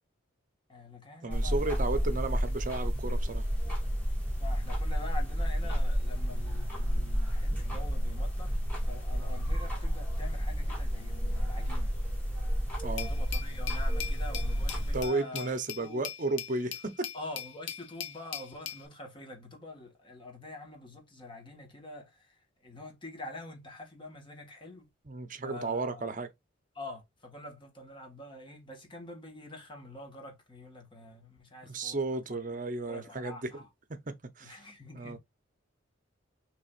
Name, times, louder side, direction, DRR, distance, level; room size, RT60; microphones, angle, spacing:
voice 1, 0.7-2.0 4.4-11.9 13.0-15.5 15.8-16.1 17.1-24.9 25.4-26.2 26.7-32.5 32.8-33.6 34.4-35.2, left 2 dB, 25° left, 1.6 m, -46 dB
voice 2, 1.2-3.5 12.8-13.1 14.9-17.1 25.0-26.3 31.6-33.4 33.9-34.6 34.9-35.2, right 2 dB, 40° right, 0.8 m, -33 dB
sound 1, 1.3-15.1, equal, 10° left, 2.2 m, -31 dB
Glass, 13.0-18.9, left 9 dB, 65° left, 0.9 m, -41 dB
6.1 x 3.4 x 2.4 m
head